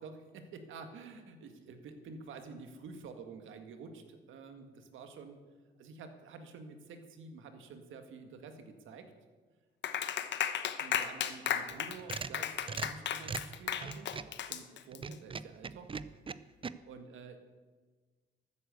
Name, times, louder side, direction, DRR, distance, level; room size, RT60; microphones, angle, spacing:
voice 1, 0.0-5.4 5.8-9.1 10.8-14.1 14.4-15.9 16.8-17.4, right 4 dB, 80° right, 7 dB, 1.9 m, -49 dB
Clapping, 9.8-15.1, left 9 dB, 65° left, 1.1 m, -35 dB
sound 1, 11.7-14.4 14.9-16.7, right 5 dB, 25° right, 0.6 m, -41 dB
13.5 x 9.4 x 8.2 m, 1.4 s
cardioid pair, 90°, 20 cm